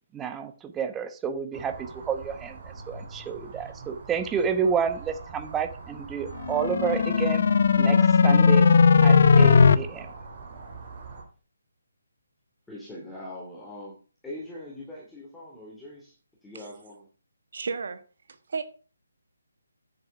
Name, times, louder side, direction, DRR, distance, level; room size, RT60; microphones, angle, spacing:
voice 1, 0.1-2.6 2.9-7.4 7.8-8.7 9.0-10.1, right 7 dB, 10° right, 9 dB, 1.0 m, -30 dB
sound 1, 1.5-11.2, right 4 dB, 40° right, 3.9 m, -43 dB
sound 2, 6.4-9.7, left 5 dB, 50° left, 0.8 m, -18 dB
voice 2, 12.7-14.0 14.2-16.1 16.4-17.1, left 1 dB, 5° left, -5 dB, 2.8 m, -41 dB
voice 3, 17.5-18.0 18.5-18.6, right 5 dB, 55° right, 10 dB, 1.4 m, -32 dB
9.7 x 7.9 x 5.8 m, 0.37 s
figure-of-eight pair, 145°, 0 cm